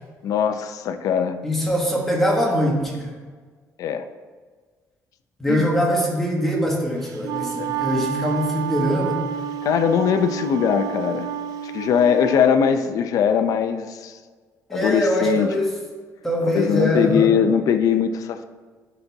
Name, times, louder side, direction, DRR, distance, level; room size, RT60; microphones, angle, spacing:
voice 1, 0.2-1.4 3.8-4.0 5.5-5.7 7.5-7.7 9.6-11.3 11.6-14.2 14.7-15.5 16.4-18.5, left 7 dB, 60° left, 9 dB, 0.5 m, -21 dB
voice 2, 1.4-3.1 5.4-9.2 14.7-15.7 16.2-17.3, equal, 5° left, -2 dB, 1.4 m, -22 dB
Wind instrument woodwind instrument, 7.0-12.5, right 9 dB, 80° right, 0.4 m, -29 dB
11.0 x 4.1 x 3.5 m, 1.5 s
cardioid pair, 155°, 7 cm